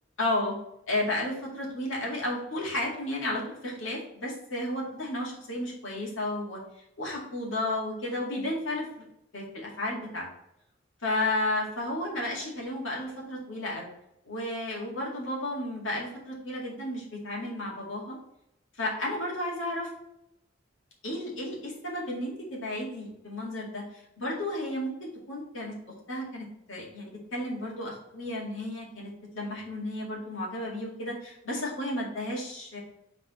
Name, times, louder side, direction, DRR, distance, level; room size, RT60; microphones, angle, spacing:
voice 1, 0.2-0.5 0.9-6.6 7.0-9.1 9.3-10.3 11.0-13.9 14.3-18.2 18.8-19.9 21.0-32.8, left 1 dB, 85° left, -3 dB, 2.1 m, -33 dB
5.8 x 4.1 x 4.2 m, 0.81 s
head